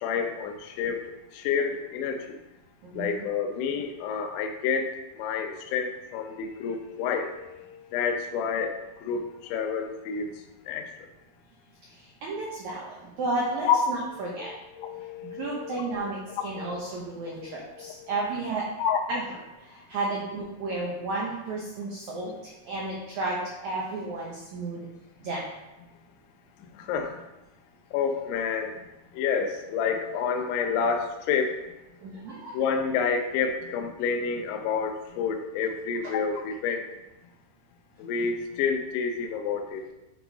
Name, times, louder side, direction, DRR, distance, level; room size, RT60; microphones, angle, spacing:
voice 1, 0.0-1.0 1.3-2.4 2.9-10.4 10.7-10.9 13.6-13.8 14.1-16.1 16.4-16.8 17.4-18.1 18.8-19.0 23.8-23.9 26.7-27.2 27.9-28.8 29.1-31.6 32.5-36.8 38.0-39.8, left 6 dB, 85° left, 5 dB, 2.8 m, -29 dB
voice 2, 2.8-3.3 12.2-14.5 15.4-16.2 16.4-18.7 19.1-19.2 19.7-22.3 22.7-24.8 25.2-25.4 32.0-32.6, right 2 dB, 90° right, -3 dB, 1.6 m, -32 dB
9.8 x 4.1 x 3.5 m, 1.0 s
omnidirectional pair, 4.7 m